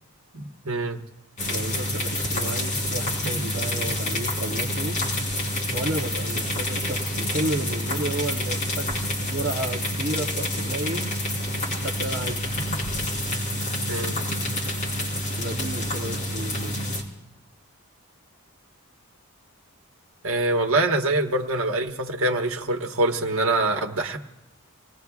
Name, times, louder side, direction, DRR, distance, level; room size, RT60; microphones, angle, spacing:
voice 1, 0.3-1.0 3.4-3.5 13.9-14.2 20.2-24.2, right 2 dB, 70° right, 2 dB, 1.4 m, -24 dB
sound 1, 1.4-17.0, left 1 dB, 35° left, 3.7 m, -28 dB
voice 2, 1.5-5.0 5.7-8.9 9.2-11.2 11.8-12.4 15.3-16.8, right 1 dB, 45° right, -1 dB, 0.9 m, -32 dB
29.0 x 19.5 x 2.4 m, 1.0 s
head